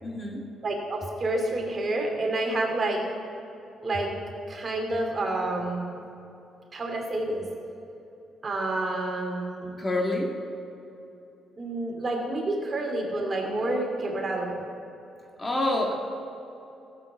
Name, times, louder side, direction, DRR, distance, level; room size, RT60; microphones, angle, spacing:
voice 1, 0.0-0.5 9.8-10.4 15.4-15.9, left 1 dB, 25° left, 1 dB, 1.8 m, -27 dB
voice 2, 0.6-3.0 3.8-4.1 4.5-5.9 6.7-7.5 8.4-9.8 11.6-14.6, right 2 dB, 35° right, 1 dB, 2.7 m, -29 dB
14.5 x 8.0 x 7.3 m, 2.9 s
cardioid pair, 90°, 0 cm